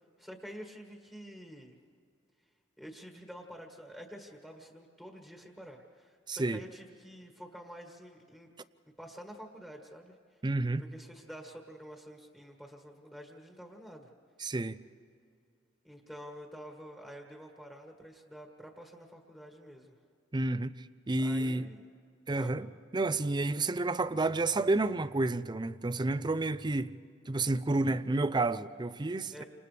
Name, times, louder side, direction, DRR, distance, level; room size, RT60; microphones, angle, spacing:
voice 1, 0.2-1.8 2.8-8.5 9.0-10.1 10.8-14.1 15.8-19.9 21.2-21.8 22.3-22.5 29.3-29.4, equal, 5° left, 1.6 m, -48 dB
voice 2, 6.3-6.6 10.4-10.8 14.4-14.8 20.3-20.7 21.1-21.7 22.3-22.7 22.9-26.9 27.3-29.4, right 2 dB, 25° right, 0.5 m, -30 dB
30.0 x 27.0 x 3.4 m
head